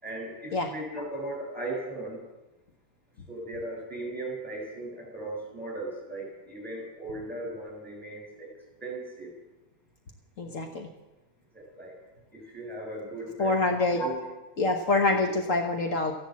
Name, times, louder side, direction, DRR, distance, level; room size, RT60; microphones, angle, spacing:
voice 1, 0.0-2.2 3.3-8.5 8.8-9.3 11.5-11.9 12.3-14.2 15.5-15.6, right 2 dB, 5° right, -1 dB, 6.2 m, -37 dB
voice 2, 10.4-10.9 13.4-14.0 14.6-16.1, left 3 dB, 65° left, 4 dB, 1.5 m, -26 dB
14.0 x 11.5 x 7.4 m, 1.0 s
omnidirectional pair, 1.5 m